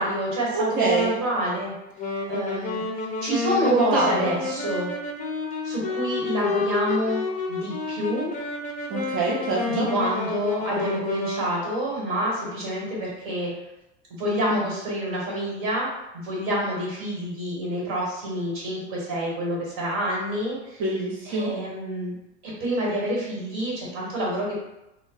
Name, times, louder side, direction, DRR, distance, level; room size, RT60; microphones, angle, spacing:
voice 1, 0.0-1.7 2.3-2.8 3.2-4.9 5.6-7.2 7.5-8.3 9.6-13.5 14.2-15.9 16.1-20.8 21.2-22.1 22.4-24.5, equal, 60° right, -3 dB, 1.4 m, -27 dB
voice 2, 0.5-1.1 3.7-4.4 8.9-9.9 20.8-21.5, right 3 dB, 40° right, -4 dB, 0.6 m, -25 dB
Wind instrument woodwind instrument, 2.0-11.5, left 4 dB, 25° left, 0.5 m, -30 dB
2.2 x 2.1 x 3.8 m, 0.92 s
hypercardioid pair, 95°, 34 cm